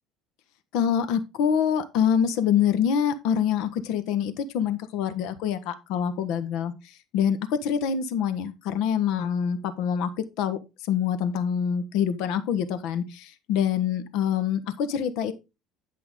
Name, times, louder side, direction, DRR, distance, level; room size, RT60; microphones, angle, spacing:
voice 1, 0.7-6.7 7.1-10.1 10.4-10.6 10.9-15.3, left 8 dB, 65° left, 1.2 m, -25 dB
10.5 x 5.7 x 3.6 m
cardioid pair, 160°, 0 cm